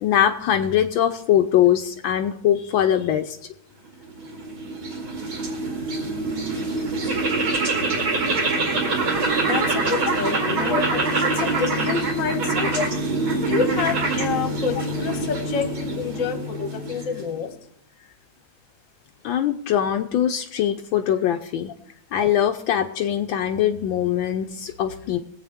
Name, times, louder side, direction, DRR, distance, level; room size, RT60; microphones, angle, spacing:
voice 1, 0.0-3.4 10.7-10.8 19.2-21.7 22.1-25.2, left 10 dB, 75° left, 6 dB, 1.4 m, -22 dB
sound 1, 4.0-17.5, right 3 dB, 75° right, 3.1 m, -25 dB
voice 2, 9.4-12.8 13.4-17.5, left 6 dB, 45° left, 8 dB, 1.4 m, -28 dB
22.5 x 8.2 x 3.5 m, 0.73 s
omnidirectional pair, 2.2 m